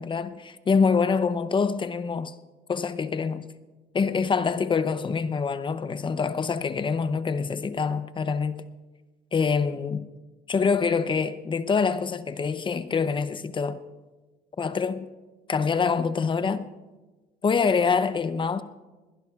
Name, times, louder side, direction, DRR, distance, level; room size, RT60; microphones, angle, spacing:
voice 1, 0.0-2.3 2.7-3.5 3.9-8.6 9.3-10.0 10.5-13.8 14.6-15.1 15.5-16.7 17.4-18.6, left 5 dB, 30° left, 0.6 m, -25 dB
20.5 x 18.5 x 2.4 m
cardioid pair, 110°, 17 cm